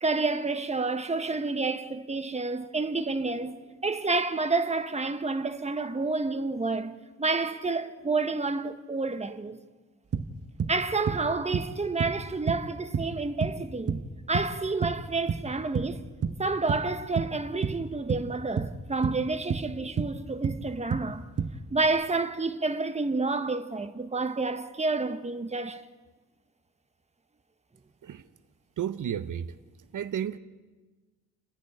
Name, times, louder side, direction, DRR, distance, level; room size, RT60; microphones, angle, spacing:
voice 1, 0.0-3.5 3.8-9.6 10.7-14.0 14.3-16.1 16.4-21.2 21.7-25.8, right 3 dB, 20° right, 1.1 m, -29 dB
sound 1, 10.1-10.8 11.1-11.3 11.5-12.2 12.5-13.6 13.9-14.6 14.8-15.5 15.7-16.0 16.2-16.9 17.2-18.3 18.6-19.7 20.0-21.1 21.4-21.9, right 6 dB, 50° right, 1.2 m, -30 dB
voice 2, 28.8-29.5 29.9-30.4, right 9 dB, 80° right, 0.8 m, -32 dB
30.0 x 10.5 x 8.9 m
wide cardioid pair, 110°, 31 cm